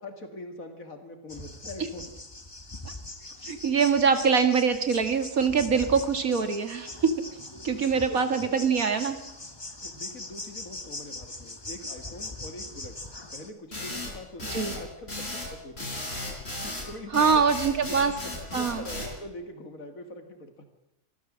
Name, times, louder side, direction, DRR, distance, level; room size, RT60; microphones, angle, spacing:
voice 1, 0.0-2.0 8.1-8.7 9.8-13.0 13.3-15.9 16.6-17.4 17.9-20.7, left 2 dB, 60° left, 6 dB, 2.6 m, -43 dB
sound 1, 1.3-13.5, left 2 dB, 15° left, 1.4 m, -41 dB
voice 2, 3.4-6.9 7.6-9.2 14.5-14.7 17.1-18.1 18.5-18.9, right 6 dB, 65° right, 8 dB, 2.3 m, -24 dB
sound 2, 13.7-19.1, left 1 dB, 40° left, 4.8 m, -35 dB
25.0 x 14.0 x 7.5 m, 0.93 s
omnidirectional pair, 1.6 m